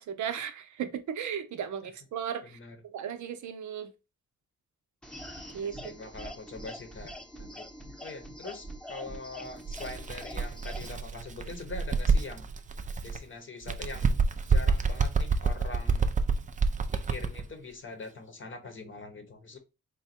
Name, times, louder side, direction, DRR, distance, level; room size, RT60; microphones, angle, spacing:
voice 1, 0.0-2.6 2.8-3.9 5.5-6.1, right 8 dB, 80° right, 0.7 m, -36 dB
voice 2, 2.4-2.8 5.6-7.7 8.0-12.5 13.0-16.1 16.9-19.6, left 3 dB, 45° left, 0.8 m, -43 dB
sound 1, 5.0-10.9, equal, 5° left, 0.8 m, -44 dB
Bird, 9.7-13.2 13.6-17.4, right 4 dB, 25° right, 0.4 m, -28 dB
3.9 x 2.3 x 4.3 m
cardioid pair, 105°, 29 cm